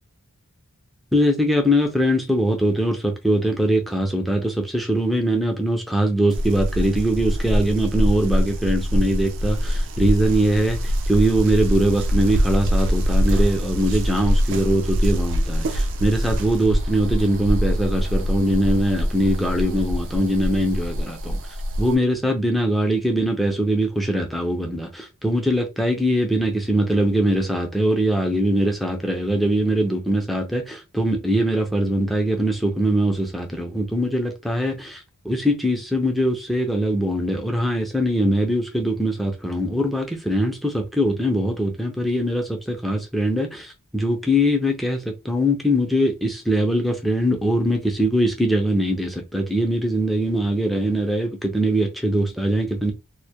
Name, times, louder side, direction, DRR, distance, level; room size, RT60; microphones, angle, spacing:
voice 1, 1.1-21.4 21.8-52.9, equal, ahead, 0.4 m, -22 dB
sound 1, 6.3-21.9, equal, 60° right, 0.4 m, -23 dB
2.1 x 2.1 x 2.7 m
head